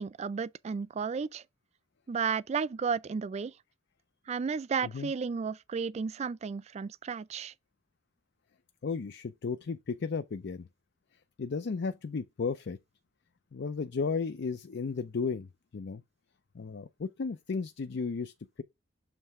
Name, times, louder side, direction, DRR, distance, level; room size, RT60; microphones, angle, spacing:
voice 1, 0.0-1.4 2.1-3.5 4.3-7.5, right 6 dB, 35° right, 0.3 m, -33 dB
voice 2, 8.8-10.7 11.4-12.8 13.5-15.5 15.7-16.0 16.5-18.3, left 5 dB, 60° left, 0.5 m, -34 dB
7.3 x 3.3 x 4.7 m
head